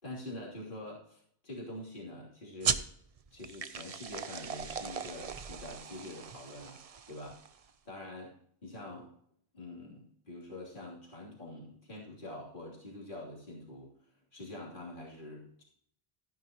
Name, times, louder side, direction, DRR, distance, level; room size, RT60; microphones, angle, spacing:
voice 1, 0.0-2.8 3.3-6.8 7.1-7.4 7.8-8.3 8.6-9.1 9.5-13.9 14.3-15.6, left 1 dB, 50° left, -4 dB, 3.2 m, -45 dB
sound 1, 2.6-7.7, right 6 dB, 45° right, 0.5 m, -38 dB
14.0 x 10.5 x 2.9 m, 0.63 s
omnidirectional pair, 1.1 m